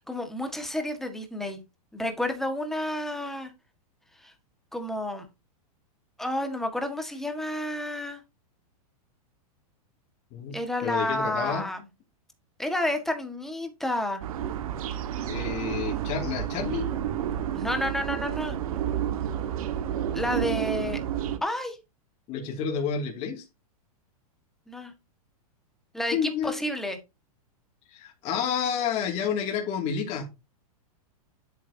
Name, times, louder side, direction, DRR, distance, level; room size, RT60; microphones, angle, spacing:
voice 1, 0.0-1.6 1.9-3.5 4.2-4.3 4.7-5.3 6.2-8.2 10.5-11.8 12.6-14.2 17.5-18.6 20.1-21.0 21.4-21.8 24.7-24.9 25.9-27.0, left 1 dB, ahead, 1.6 m, -30 dB
voice 2, 10.8-11.7 15.3-16.9 22.3-23.4 26.1-26.5 27.9-30.3, left 7 dB, 35° left, 2.5 m, -29 dB
sound 1, 14.2-21.4, right 10 dB, 70° right, 1.6 m, -30 dB
9.8 x 8.4 x 2.8 m
hypercardioid pair, 145°, 19 cm